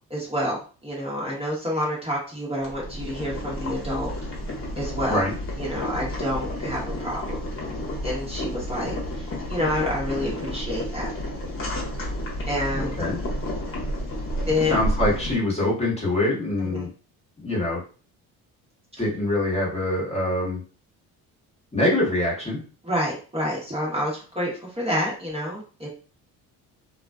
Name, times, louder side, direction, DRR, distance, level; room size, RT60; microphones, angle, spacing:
voice 1, 0.1-4.1 4.8-5.2 5.6-7.4 8.0-11.1 12.5-13.0 14.4-14.8 16.7-16.9 22.8-25.9, left 1 dB, 15° right, -5 dB, 1.0 m, -28 dB
Boiling, 2.6-15.3, equal, 35° left, 1.0 m, -31 dB
voice 2, 12.7-13.2 14.7-16.9 17.4-17.8 19.0-20.6 21.7-22.6, left 1 dB, 15° left, -4 dB, 1.1 m, -24 dB
2.4 x 2.2 x 2.3 m, 0.37 s
supercardioid pair, 80°, 36 cm